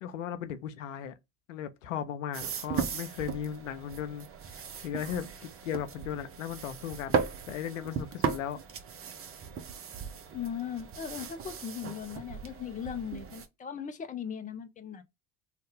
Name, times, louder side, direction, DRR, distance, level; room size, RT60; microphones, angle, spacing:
voice 1, 0.0-1.1 1.5-8.6, left 9 dB, 80° left, 0.6 m, -37 dB
sound 1, 2.3-13.5, right 6 dB, 35° right, 0.7 m, -37 dB
voice 2, 10.3-15.0, left 8 dB, 20° left, 0.6 m, -38 dB
2.7 x 2.4 x 3.4 m
hypercardioid pair, 65°, 38 cm